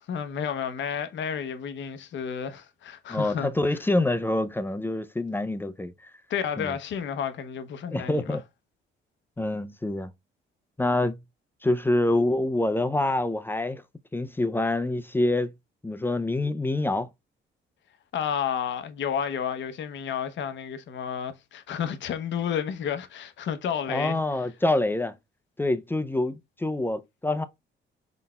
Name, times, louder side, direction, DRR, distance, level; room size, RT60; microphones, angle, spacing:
voice 1, 0.1-3.5 6.3-8.4 18.1-24.2, left 8 dB, 70° left, 0.7 m, -31 dB
voice 2, 3.1-6.1 6.6-6.8 7.9-8.4 9.4-10.1 10.8-11.2 11.6-13.8 14.1-15.5 15.8-17.1 23.9-25.2 25.6-27.4, left 2 dB, 10° left, 0.4 m, -26 dB
4.0 x 4.0 x 2.2 m
cardioid pair, 90°, 20 cm